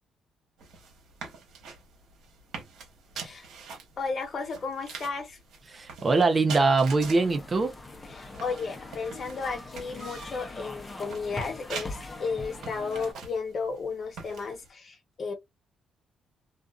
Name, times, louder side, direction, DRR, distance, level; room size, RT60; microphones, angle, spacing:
sound 1, 0.6-14.7, right 5 dB, 80° right, 1.1 m, -45 dB
voice 1, 3.1-3.5 4.0-5.4 8.0-15.3, left 4 dB, 50° left, 1.0 m, -34 dB
voice 2, 5.7-7.7, right 3 dB, 35° right, 0.7 m, -23 dB
sound 2, 7.0-13.1, left 2 dB, 20° left, 0.7 m, -42 dB
2.5 x 2.4 x 2.3 m
cardioid pair, 90°, 0 cm